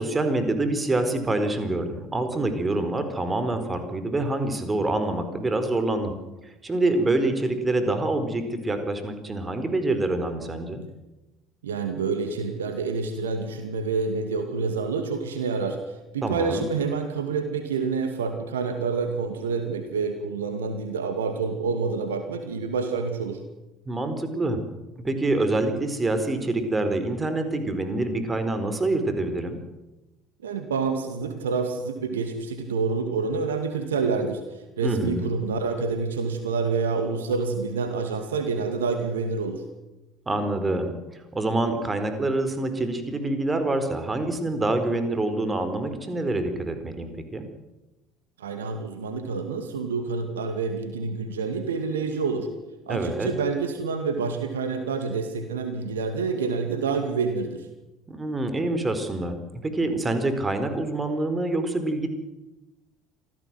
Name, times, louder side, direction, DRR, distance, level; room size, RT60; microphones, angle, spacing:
voice 1, 0.0-6.1 6.6-10.8 16.2-16.7 23.9-24.6 25.0-29.6 34.8-35.3 40.3-40.9 41.3-47.4 52.9-53.3 58.1-59.3 59.6-62.1, right 2 dB, 20° right, 8 dB, 4.4 m, -26 dB
voice 2, 11.6-23.4 30.4-39.6 48.4-52.5 52.9-57.7, right 4 dB, 75° right, 7 dB, 2.2 m, -28 dB
26.5 x 16.0 x 7.7 m, 1.0 s
figure-of-eight pair, 60°, 0 cm